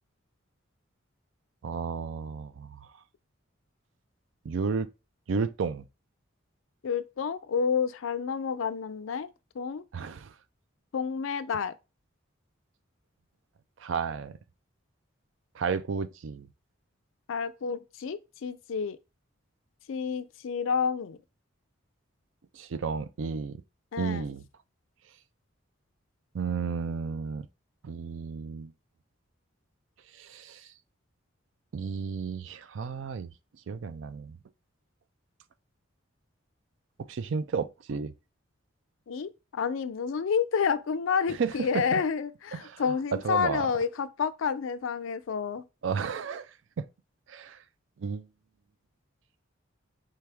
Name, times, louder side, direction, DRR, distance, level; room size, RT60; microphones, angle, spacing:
voice 1, 1.6-2.9 4.4-4.9 5.3-5.9 9.9-10.3 13.8-14.4 15.5-16.5 22.5-23.6 24.0-24.4 26.3-27.5 27.8-28.7 30.1-30.7 31.7-33.3 33.7-34.4 37.0-38.1 41.3-42.0 42.5-42.8 43.1-43.7 45.8-46.5 46.8-46.9 47.3-47.6 48.0-48.3, right 5 dB, 70° right, 0.4 m, -32 dB
voice 2, 6.8-9.3 9.6-9.8 10.9-11.7 17.3-19.0 19.9-21.2 23.9-24.2 39.1-45.6, left 6 dB, 75° left, 0.4 m, -29 dB
4.6 x 3.4 x 3.4 m
head